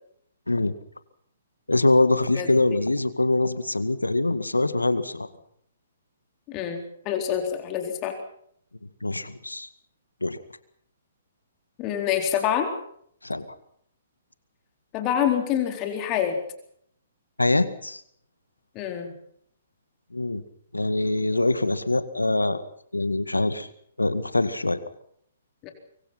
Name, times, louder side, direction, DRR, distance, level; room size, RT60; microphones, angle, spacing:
voice 1, 1.7-5.3 9.0-9.7 10.2-10.4 13.2-13.5 17.4-18.0 20.1-20.4 20.7-22.6 22.9-23.7 24.0-24.8, left 2 dB, 90° left, 13 dB, 1.9 m, -23 dB
voice 2, 6.5-8.1 11.8-12.7 14.9-16.4 18.7-19.1 25.6-25.7, left 9 dB, 30° left, 5 dB, 4.1 m, -26 dB
24.5 x 24.0 x 5.9 m, 0.67 s
figure-of-eight pair, 125°, 0 cm